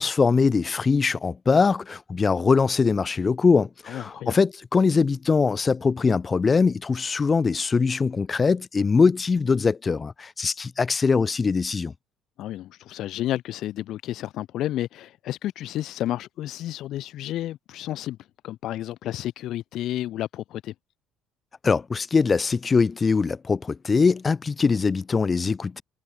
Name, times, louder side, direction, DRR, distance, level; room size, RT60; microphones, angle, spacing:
voice 1, 0.0-11.9 21.6-25.8, left 5 dB, 25° left, 1.3 m, -22 dB
voice 2, 3.9-4.3 12.4-18.2 18.4-20.7, left 13 dB, 65° left, 0.9 m, -31 dB
cardioid pair, 105°, 0 cm